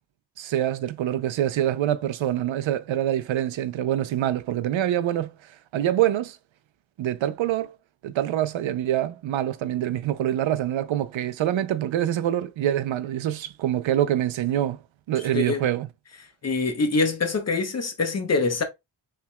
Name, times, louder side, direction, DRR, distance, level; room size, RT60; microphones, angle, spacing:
voice 1, 0.4-6.4 7.0-7.8 8.0-14.8 15.1-15.9, right 12 dB, 90° right, 0.6 m, -25 dB
voice 2, 15.3-15.7 16.4-18.6, left 3 dB, 35° left, 0.8 m, -24 dB
5.7 x 3.4 x 2.2 m
wide cardioid pair, 180°, 46 cm